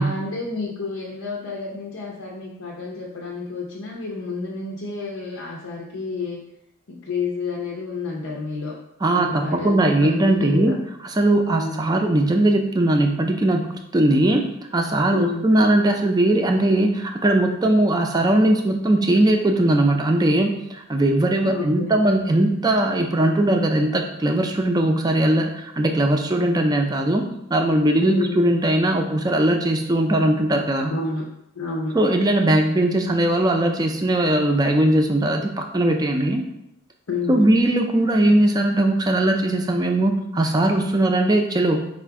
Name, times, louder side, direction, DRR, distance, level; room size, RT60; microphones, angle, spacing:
voice 1, 0.0-6.4 6.9-8.8 9.1-10.7 11.5-11.8 15.1-15.5 21.4-22.0 28.0-28.4 30.9-31.2 31.5-32.0 37.1-37.5, left 3 dB, 85° left, -4 dB, 0.7 m, -30 dB
voice 2, 9.0-10.7 11.1-13.6 13.9-14.5 14.7-30.9 31.9-36.4 37.3-42.0, right 1 dB, 20° right, 4 dB, 0.4 m, -19 dB
4.1 x 2.4 x 4.6 m, 0.81 s
head